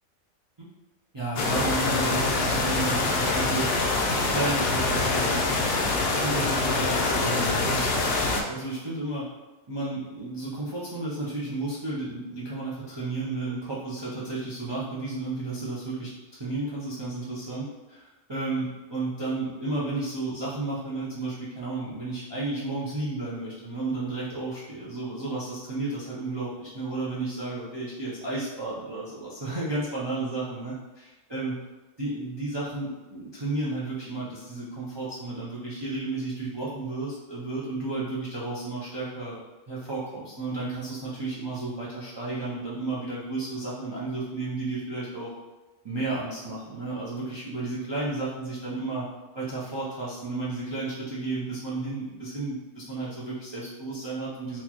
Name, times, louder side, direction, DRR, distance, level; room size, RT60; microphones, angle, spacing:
voice 1, 1.1-3.7 4.2-5.4 6.0-9.3 9.7-31.6 32.0-39.4 39.7-45.3 45.8-49.1 49.3-54.6, right 2 dB, 40° right, -7 dB, 0.4 m, -32 dB
sound 1, 1.4-8.4, left 3 dB, 65° left, 0.8 m, -25 dB
4.3 x 2.3 x 2.9 m, 1.1 s
omnidirectional pair, 1.4 m